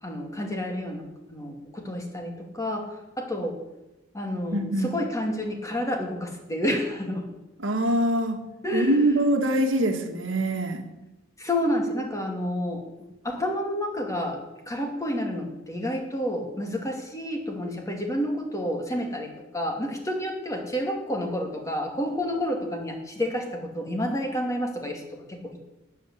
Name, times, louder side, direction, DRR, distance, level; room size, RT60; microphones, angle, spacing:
voice 1, 0.0-2.9 3.2-3.6 4.1-7.3 8.6-9.0 11.4-12.8 13.2-25.6, equal, 15° left, 2 dB, 2.4 m, -29 dB
voice 2, 4.5-4.9 7.6-8.4 8.7-10.8, right 1 dB, 70° right, 5 dB, 1.8 m, -24 dB
13.0 x 9.1 x 8.4 m, 1.0 s
head